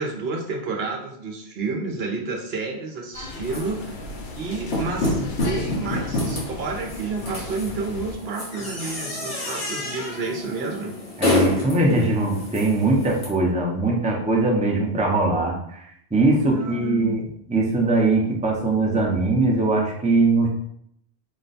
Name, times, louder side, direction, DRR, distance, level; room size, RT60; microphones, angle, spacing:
voice 1, 0.0-4.0 4.4-10.9 16.5-17.2, right 3 dB, 70° right, 1 dB, 0.9 m, -30 dB
sound 1, 3.1-8.1, left 2 dB, 55° left, 0.7 m, -37 dB
sound 2, 3.4-13.2, left 2 dB, 80° left, 1.7 m, -28 dB
voice 2, 11.2-20.5, right 2 dB, 10° right, -2 dB, 0.6 m, -21 dB
5.0 x 2.2 x 4.0 m, 0.70 s
omnidirectional pair, 1.1 m